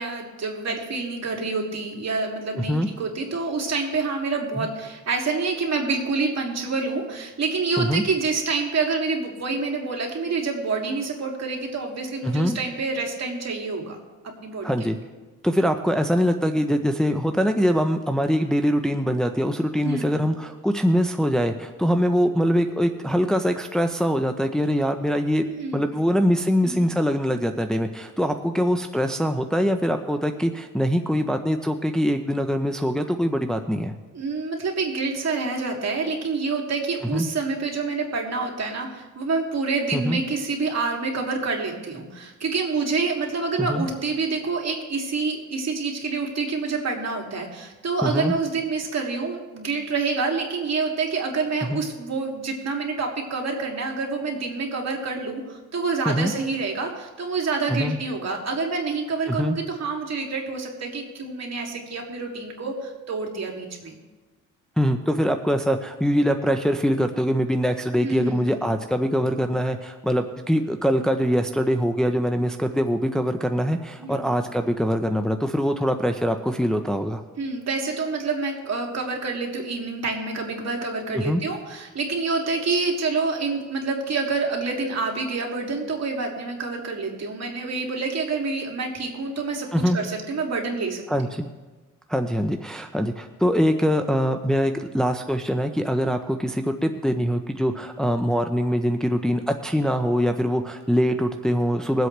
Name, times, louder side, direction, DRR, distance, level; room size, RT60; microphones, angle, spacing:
voice 1, 0.0-14.0 14.4-14.7 19.8-20.1 25.4-26.0 26.6-26.9 34.1-63.9 68.0-68.5 74.0-74.2 77.4-89.7 89.9-91.0, right 4 dB, 55° right, 0 dB, 2.9 m, -27 dB
voice 2, 2.5-2.9 4.6-4.7 7.8-8.0 12.2-12.6 14.6-15.0 15.4-25.4 25.7-33.9 37.1-37.3 39.9-40.2 43.6-43.9 48.0-48.3 51.7-51.8 56.1-56.3 57.7-58.0 59.3-59.6 64.8-77.2 81.1-81.4 89.7-90.0 91.1-91.5 92.1-102.1, equal, ahead, 5 dB, 0.8 m, -23 dB
22.0 x 8.0 x 3.4 m, 1.2 s
cardioid pair, 70°, 32 cm